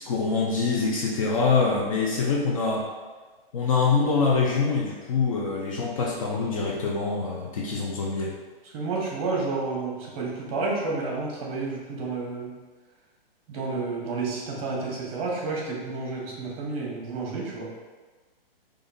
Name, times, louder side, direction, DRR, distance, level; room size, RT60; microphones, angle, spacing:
voice 1, 0.0-2.9 3.5-8.4, left 4 dB, 35° left, -2 dB, 0.4 m, -25 dB
voice 2, 8.6-12.5 13.5-17.6, right 3 dB, 35° right, -3 dB, 1.1 m, -30 dB
5.0 x 2.5 x 2.6 m, 1.3 s
hypercardioid pair, 150°, 30 cm